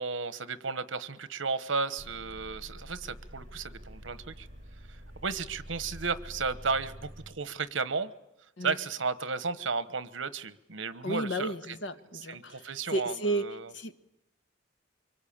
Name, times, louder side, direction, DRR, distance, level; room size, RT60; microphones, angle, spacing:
voice 1, 0.0-4.5 5.2-8.1 8.6-11.8 12.3-13.7, right 4 dB, 80° right, 13 dB, 1.2 m, -34 dB
sound 1, 2.0-7.3, equal, 40° right, 5.6 m, -47 dB
voice 2, 11.0-14.0, right 1 dB, 70° left, 8 dB, 1.5 m, -33 dB
24.5 x 24.0 x 8.8 m, 0.91 s
head